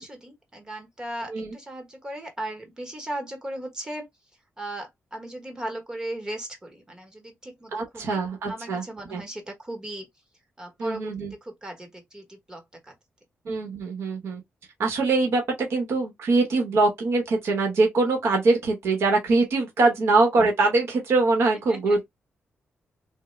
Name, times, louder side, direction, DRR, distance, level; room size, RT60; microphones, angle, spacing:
voice 1, 0.0-4.1 4.6-8.2 8.5-10.1 10.6-11.1 11.4-12.9 21.7-22.0, right 1 dB, 15° right, 1.0 m, -37 dB
voice 2, 7.7-8.8 9.1-9.2 10.8-11.3 13.4-14.4 14.8-22.0, right 3 dB, 70° right, 1.0 m, -23 dB
3.6 x 2.1 x 3.1 m
wide cardioid pair, 180°, 4 cm